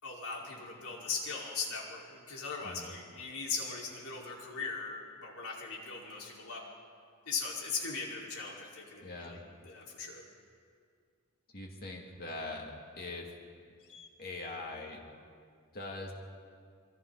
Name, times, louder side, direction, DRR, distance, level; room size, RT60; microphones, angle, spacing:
voice 1, 0.0-6.6 7.3-10.2 13.8-14.1, left 4 dB, 85° left, -3 dB, 5.0 m, -39 dB
voice 2, 2.6-2.9 9.0-9.4 11.5-12.7 13.0-13.3 14.2-15.1 15.7-16.1, left 2 dB, 45° left, -1 dB, 2.7 m, -42 dB
27.5 x 23.5 x 4.2 m, 2.1 s
head